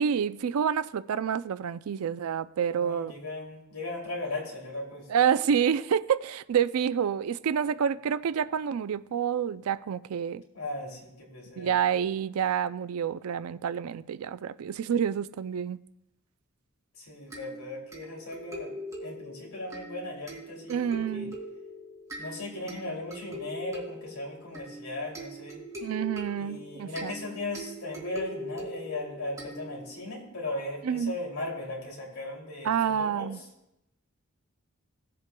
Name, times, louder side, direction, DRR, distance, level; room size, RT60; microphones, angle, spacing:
voice 1, 0.0-3.1 5.1-10.4 11.6-15.8 20.7-21.4 25.8-27.1 30.8-31.2 32.6-33.4, right 8 dB, 85° right, 0.4 m, -28 dB
voice 2, 2.8-5.1 10.5-11.7 17.0-18.7 19.0-21.3 22.2-25.6 26.4-33.3, left 2 dB, 85° left, 2.7 m, -37 dB
sound 1, 17.3-30.1, equal, 15° right, 2.4 m, -42 dB
17.0 x 7.6 x 2.2 m
head